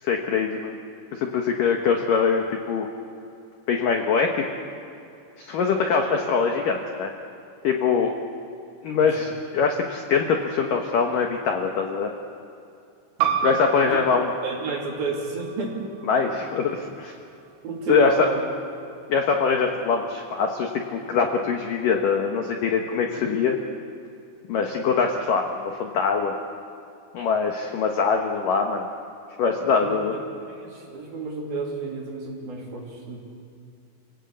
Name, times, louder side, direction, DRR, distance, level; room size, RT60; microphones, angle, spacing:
voice 1, 0.0-0.8 1.1-2.9 3.7-4.5 5.4-7.1 7.6-8.1 8.8-12.1 13.4-14.3 16.1-17.1 17.9-18.3 19.1-23.6 24.5-26.3 27.1-28.9 29.4-30.1, left 5 dB, 80° left, 3 dB, 1.9 m, -23 dB
sound 1, 13.2-18.4, right 8 dB, 85° right, 4.4 m, -32 dB
voice 2, 14.4-15.8 17.6-18.4 29.7-33.2, right 3 dB, 50° right, -1 dB, 4.5 m, -31 dB
28.5 x 17.5 x 8.5 m, 2.6 s
omnidirectional pair, 5.8 m